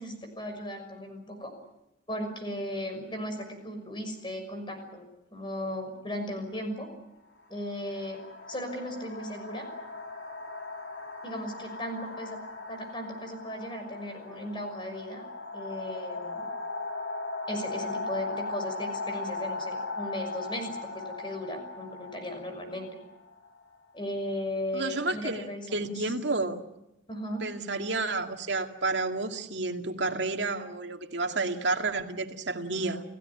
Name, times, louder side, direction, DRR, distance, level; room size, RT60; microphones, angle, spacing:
voice 1, 0.0-1.5 2.1-6.9 7.5-8.2 8.5-9.7 11.2-12.4 12.7-15.3 15.5-16.5 17.5-22.9 23.9-26.1 27.1-27.5, left 1 dB, 25° left, 6 dB, 6.1 m, -36 dB
sound 1, 6.2-6.4 7.4-24.0, left 3 dB, 70° left, 5.4 m, -38 dB
voice 2, 24.7-25.4 25.7-26.6 27.4-33.0, right 3 dB, 70° right, 4 dB, 2.3 m, -30 dB
29.5 x 16.5 x 9.9 m, 0.89 s
head